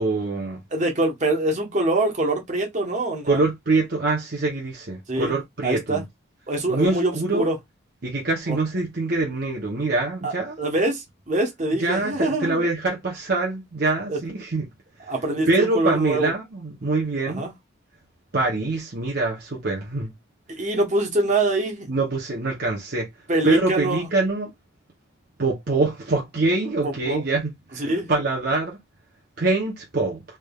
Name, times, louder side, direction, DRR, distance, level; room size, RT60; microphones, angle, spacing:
voice 1, 0.0-0.6 3.2-6.0 6.7-7.5 8.0-10.6 11.8-14.7 15.5-17.5 18.3-20.1 21.9-23.1 23.4-24.5 25.4-28.8 29.4-30.2, right 3 dB, 50° right, 0.8 m, -24 dB
voice 2, 0.7-3.4 5.1-6.0 6.5-7.6 8.5-8.6 10.2-12.6 14.1-14.2 15.1-16.3 17.3-17.5 20.5-21.9 23.3-24.1 26.8-27.2 27.8-28.1, right 2 dB, 35° right, 1.1 m, -24 dB
3.5 x 3.3 x 2.4 m
head